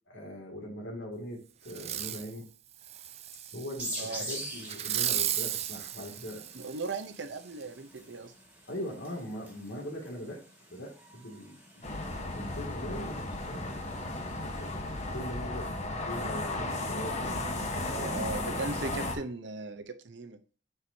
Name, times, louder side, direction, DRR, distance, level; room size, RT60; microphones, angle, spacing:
voice 1, 0.1-2.5 3.5-6.5 8.7-10.4 10.7-11.9 12.3-13.6 14.6-18.3, equal, 75° left, 0 dB, 2.4 m, -41 dB
Fireworks, 1.7-2.3 2.8-3.9 4.7-7.0 7.6-7.7, right 11 dB, 35° right, 0.4 m, -34 dB
sound 1, 3.8-15.1, right 1 dB, 10° right, 1.9 m, -46 dB
voice 2, 6.5-8.3 17.8-20.4, right 3 dB, 70° right, 9 dB, 0.8 m, -38 dB
sound 2, 11.8-19.1, left 2 dB, 35° left, 1.1 m, -35 dB
9.6 x 4.7 x 2.8 m, 0.39 s
head